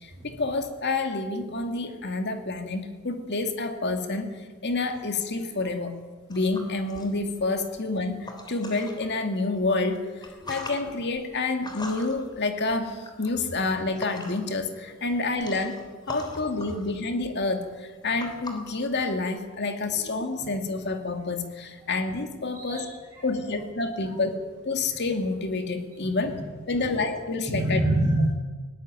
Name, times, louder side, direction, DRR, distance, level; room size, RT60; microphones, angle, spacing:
voice 1, 0.0-6.0 6.3-15.8 16.1-22.9 23.2-24.4 24.6-26.4 26.7-27.8, left 3 dB, 50° left, 6 dB, 2.4 m, -28 dB
sound 1, 6.3-9.1 9.5-14.6 14.9-19.5, left 2 dB, 20° left, 3.2 m, -43 dB
voice 2, 22.5-23.3 24.9-25.0 26.0-26.4 26.8-27.0 27.5-28.3, right 1 dB, 15° right, -8 dB, 7.8 m, -27 dB
20.0 x 18.0 x 9.0 m, 1.3 s
head